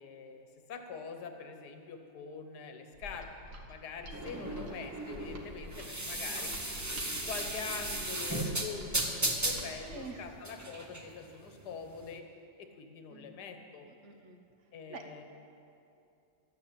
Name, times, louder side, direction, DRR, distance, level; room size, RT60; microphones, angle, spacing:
voice 1, 0.0-3.3 3.7-6.6 7.0-12.2 12.6-13.9 14.7-15.2, left 5 dB, 65° left, 6 dB, 1.6 m, -44 dB
Mechanisms, 2.9-10.1, equal, 65° right, 1.9 m, -48 dB
sound 1, 4.1-12.1, right 1 dB, 15° right, 0.6 m, -36 dB
voice 2, 4.3-4.9 5.3-5.5 9.9-10.2 13.1-13.3 14.0-14.4 14.9-15.2, right 4 dB, 45° right, 5 dB, 1.2 m, -48 dB
13.0 x 8.4 x 8.6 m, 2.6 s
omnidirectional pair, 1.9 m